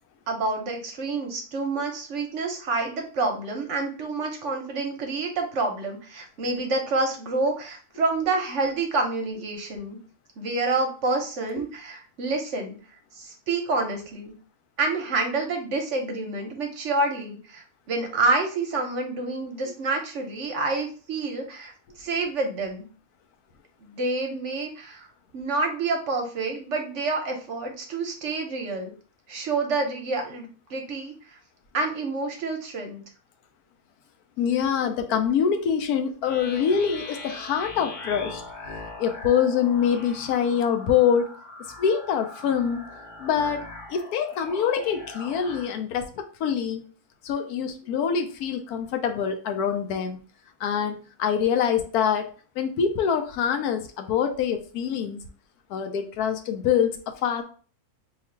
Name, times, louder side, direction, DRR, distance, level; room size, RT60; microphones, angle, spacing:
voice 1, 0.3-10.0 10.4-12.8 13.1-14.3 14.8-22.9 23.8-25.1 25.3-28.9 29.3-31.4 31.7-33.0, right 3 dB, 60° right, 3 dB, 0.9 m, -28 dB
voice 2, 34.4-38.4 39.0-41.4 41.8-42.8 43.2-43.6 43.9-46.8 47.2-50.2 50.6-52.3 52.6-55.2 55.7-57.4, left 7 dB, 80° left, 6 dB, 1.1 m, -25 dB
sound 1, 36.2-45.7, left 3 dB, 40° left, 0.8 m, -41 dB
2.9 x 2.4 x 4.3 m, 0.39 s
omnidirectional pair, 1.6 m